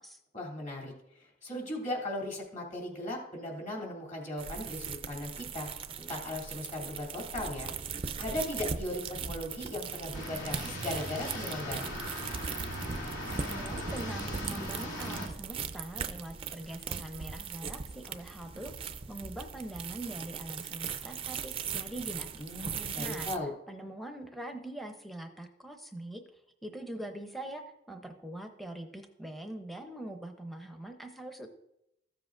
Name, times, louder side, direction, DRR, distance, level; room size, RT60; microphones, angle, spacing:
voice 1, 0.3-5.7 6.0-11.9 22.4-23.5, left 1 dB, 40° left, -1 dB, 2.7 m, -38 dB
sound 1, 4.4-23.4, right 6 dB, 30° right, 0.4 m, -39 dB
sound 2, 10.1-15.3, equal, 85° left, 2.7 m, -38 dB
voice 2, 13.3-18.7 19.1-23.3 23.7-26.2 26.6-31.5, right 1 dB, ahead, 5 dB, 0.7 m, -43 dB
14.5 x 7.6 x 2.5 m, 0.80 s
head